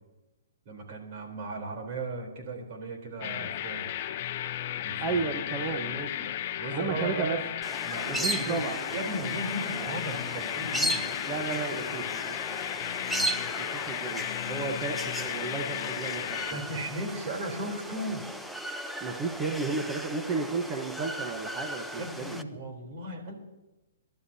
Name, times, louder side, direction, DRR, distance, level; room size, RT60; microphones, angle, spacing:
voice 1, 0.7-3.9 4.8-5.2 6.6-7.4 7.9-11.1 11.5-12.1 16.5-18.2 22.0-23.3, right 2 dB, 45° right, 2 dB, 3.7 m, -36 dB
sound 1, 3.2-16.5, left 11 dB, 40° left, 0.7 m, -34 dB
voice 2, 5.0-6.1 6.7-7.4 8.1-8.8 11.3-12.3 13.6-16.6 19.0-22.4, right 4 dB, 25° right, 3 dB, 1.1 m, -33 dB
sound 2, 7.6-22.4, equal, ahead, 0.6 m, -36 dB
26.0 x 12.0 x 2.8 m, 1.0 s
hypercardioid pair, 155°, 0 cm